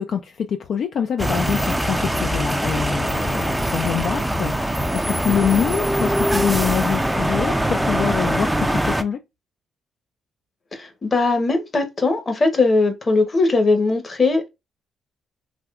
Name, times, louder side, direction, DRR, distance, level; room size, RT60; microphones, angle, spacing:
voice 1, 0.0-9.2, left 8 dB, 60° left, 0.4 m, -25 dB
sound 1, 1.2-9.0, right 1 dB, 5° right, 0.4 m, -22 dB
voice 2, 10.7-14.5, left 3 dB, 30° left, 0.9 m, -19 dB
3.5 x 2.8 x 2.4 m
cardioid pair, 90°, 0 cm